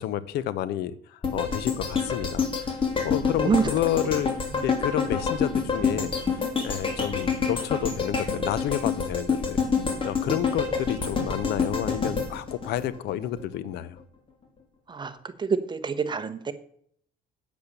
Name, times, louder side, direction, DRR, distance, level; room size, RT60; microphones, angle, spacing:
voice 1, 0.0-2.7 3.0-4.4 4.6-9.7 10.0-14.0, left 12 dB, 80° left, 0.8 m, -30 dB
sound 1, 1.2-13.4 13.8-13.9, left 5 dB, 30° left, 2.9 m, -27 dB
voice 2, 14.9-16.5, right 5 dB, 25° right, 1.1 m, -27 dB
8.5 x 8.3 x 6.7 m
cardioid pair, 110°, 17 cm